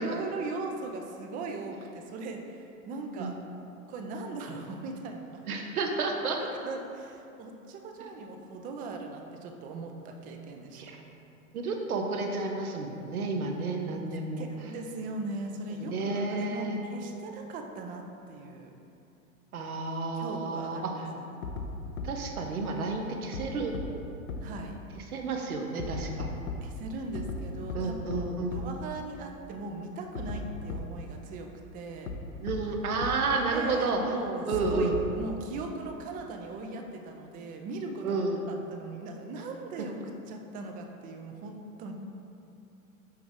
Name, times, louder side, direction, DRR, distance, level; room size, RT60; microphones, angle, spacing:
voice 1, 0.0-3.4 3.9-5.4 6.4-10.8 14.4-18.7 20.1-21.2 24.4-24.7 26.6-32.1 33.3-38.1 38.5-40.0 40.3-41.9, right 3 dB, 20° right, 3 dB, 0.4 m, -39 dB
voice 2, 5.5-6.4 10.7-11.0 11.5-14.4 15.8-16.8 19.5-21.0 22.0-23.7 24.9-26.3 27.7-28.5 32.4-34.0 34.5-34.9 38.0-38.4, right 3 dB, 80° right, 2 dB, 0.9 m, -31 dB
sound 1, 21.4-21.7 22.0-22.1 23.3-23.4 23.7-23.8 24.3-24.4 25.8-26.6 27.2-27.4 27.7-27.8 28.1-28.2 28.5-28.6 30.2-30.4 30.7-30.8 32.1-32.2 32.5-32.6 33.0-33.1 34.5-35.2, left 5 dB, 80° left, 0.8 m, -35 dB
6.3 x 4.7 x 3.5 m, 2.7 s
hypercardioid pair, 100°, 43 cm